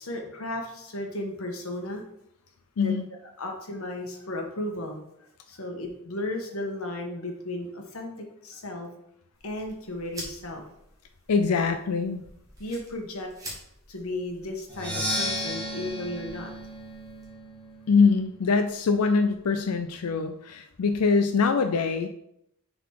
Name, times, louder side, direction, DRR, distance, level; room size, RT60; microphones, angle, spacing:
voice 1, 0.0-2.0 2.8-2.9 3.4-5.0 5.5-8.9 9.4-10.6 12.6-13.3 13.9-16.5, left 1 dB, 65° left, 2 dB, 1.3 m, -34 dB
sound 1, 9.3-17.2, right 1 dB, 15° right, 1.7 m, -47 dB
voice 2, 11.3-12.2 17.9-22.1, left 4 dB, 90° left, 7 dB, 0.5 m, -23 dB
Percussion, 14.7-18.5, equal, 5° left, 2.0 m, -34 dB
6.9 x 4.0 x 4.7 m, 0.78 s
head